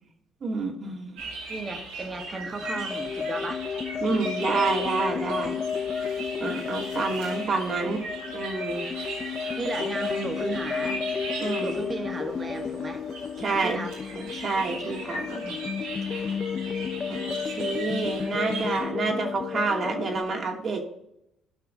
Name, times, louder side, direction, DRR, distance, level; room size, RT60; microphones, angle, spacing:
voice 1, 0.4-1.2 4.0-5.6 6.4-8.0 8.3-8.9 11.4-11.7 13.4-13.8 14.1-15.6 16.1-16.4 17.1-20.8, right 4 dB, 50° right, 2 dB, 2.5 m, -29 dB
sound 1, 1.2-18.8, right 3 dB, 90° right, 4.0 m, -38 dB
voice 2, 1.5-3.6 9.6-11.0 11.6-13.0 13.6-13.9, right 3 dB, 30° right, 5 dB, 2.1 m, -34 dB
sound 2, 2.6-20.2, left 6 dB, 45° left, 0.8 m, -32 dB
16.0 x 5.8 x 4.0 m, 0.81 s
supercardioid pair, 70°, 0 cm